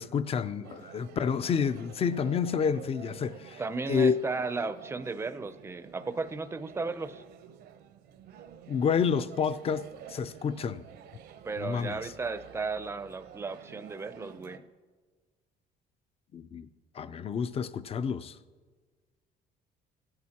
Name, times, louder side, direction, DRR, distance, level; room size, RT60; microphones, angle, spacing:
voice 1, 0.0-3.6 3.9-4.1 8.7-10.9 11.6-12.1 16.3-16.7 16.9-18.4, left 6 dB, 35° left, 0.5 m, -29 dB
sound 1, 0.6-14.6, right 9 dB, 70° right, 0.7 m, -50 dB
voice 2, 3.6-7.2 11.4-14.6, right 4 dB, 15° right, 0.5 m, -35 dB
16.0 x 10.5 x 2.9 m
cardioid pair, 110°, 17 cm